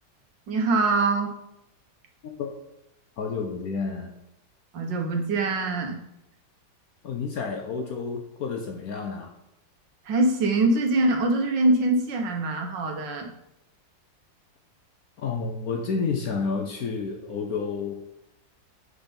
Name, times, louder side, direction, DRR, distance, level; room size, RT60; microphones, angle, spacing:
voice 1, 0.5-1.3 4.7-6.0 10.0-13.3, right 2 dB, 70° right, 2 dB, 1.7 m, -23 dB
voice 2, 3.2-4.1 7.0-9.3 15.2-18.0, left 5 dB, 65° left, 3 dB, 1.0 m, -30 dB
7.9 x 4.2 x 5.2 m, 0.85 s
omnidirectional pair, 2.1 m